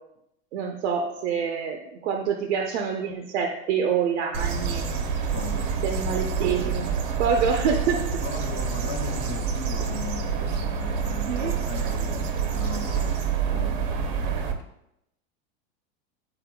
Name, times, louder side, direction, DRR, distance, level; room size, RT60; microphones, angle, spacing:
voice 1, 0.5-4.9 5.8-6.9 7.2-8.0 11.3-11.5, right 6 dB, 90° right, 0.8 m, -26 dB
sound 1, 4.3-14.5, right 6 dB, 45° right, 0.8 m, -27 dB
voice 2, 5.2-5.7 8.2-14.5, left 5 dB, 30° left, 0.5 m, -39 dB
9.7 x 4.2 x 2.3 m
supercardioid pair, 155°, 33 cm